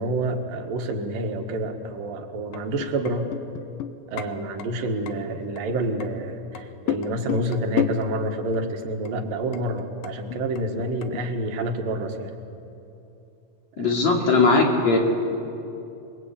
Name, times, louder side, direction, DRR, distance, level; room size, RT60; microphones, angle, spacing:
voice 1, 0.0-3.3 4.1-12.3 13.7-13.9, right 1 dB, 85° right, 4 dB, 3.4 m, -28 dB
sound 1, 2.5-4.3 4.6-4.7 5.1-5.2 5.6-6.1 6.6-8.1 8.5-8.6 9.1-9.2 9.5-11.2, left 10 dB, 80° left, 2.7 m, -30 dB
voice 2, 13.8-15.0, left 3 dB, 55° left, 1 dB, 3.9 m, -19 dB
28.0 x 21.5 x 8.7 m, 2.8 s
omnidirectional pair, 3.9 m